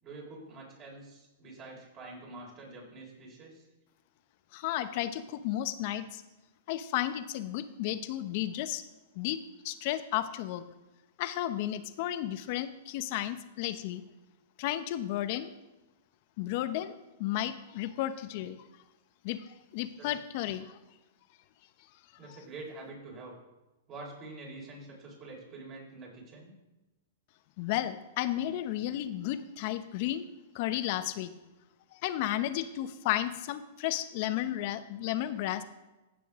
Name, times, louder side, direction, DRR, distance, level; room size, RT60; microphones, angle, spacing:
voice 1, 0.0-3.7 19.9-20.2 22.2-23.4 23.9-26.5, right 2 dB, 35° right, -2 dB, 4.3 m, -46 dB
voice 2, 4.5-6.2 6.7-8.8 9.1-9.4 9.6-10.6 11.2-14.0 14.6-15.5 16.4-16.9 17.2-18.6 19.2-20.8 27.6-30.3 30.5-31.3 31.9-35.6, left 13 dB, 50° left, 11 dB, 0.8 m, -33 dB
15.5 x 6.9 x 3.6 m, 1.1 s
hypercardioid pair, 130°, 0 cm